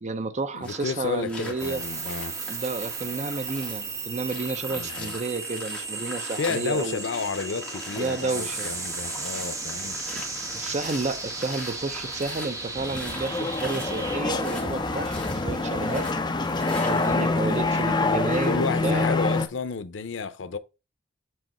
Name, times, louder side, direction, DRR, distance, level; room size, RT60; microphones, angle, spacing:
voice 1, 0.0-1.8 2.5-7.0 8.0-8.7 10.1-10.2 10.5-16.1 16.8-19.1, right 3 dB, 40° right, 0.6 m, -31 dB
voice 2, 0.5-2.4 4.7-5.2 6.4-10.0 17.3-17.6 18.5-20.6, left 4 dB, 90° left, 0.6 m, -31 dB
sound 1, 0.6-18.5, left 2 dB, 5° left, 1.8 m, -42 dB
sound 2, 1.6-14.2, right 3 dB, 20° right, 1.1 m, -35 dB
sound 3, 12.7-19.5, left 3 dB, 25° left, 0.7 m, -26 dB
7.7 x 2.9 x 4.2 m
head